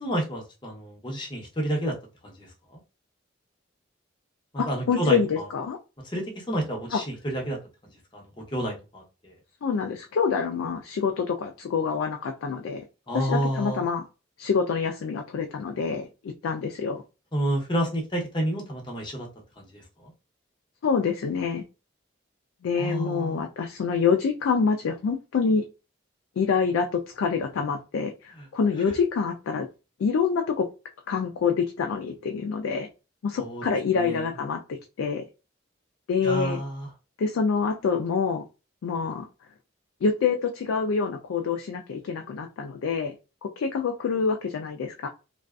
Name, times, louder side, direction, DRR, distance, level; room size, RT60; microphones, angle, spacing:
voice 1, 0.0-1.9 2.2-2.8 4.5-5.5 6.0-7.6 8.1-9.3 13.1-13.8 17.3-19.3 19.6-20.1 22.8-23.4 28.4-28.5 33.4-33.6 33.9-34.3 36.2-36.9, right 1 dB, 25° left, -2 dB, 0.7 m, -30 dB
voice 2, 4.6-5.8 6.9-7.0 9.6-12.8 13.1-14.0 14.4-17.0 20.8-21.6 22.6-25.6 26.4-29.7 30.0-30.7 31.1-32.9 33.2-35.2 36.1-36.6 37.2-38.4 38.8-39.3 40.0-43.1 43.4-45.1, left 5 dB, 90° left, 4 dB, 0.3 m, -26 dB
2.5 x 2.3 x 2.2 m, 0.30 s
head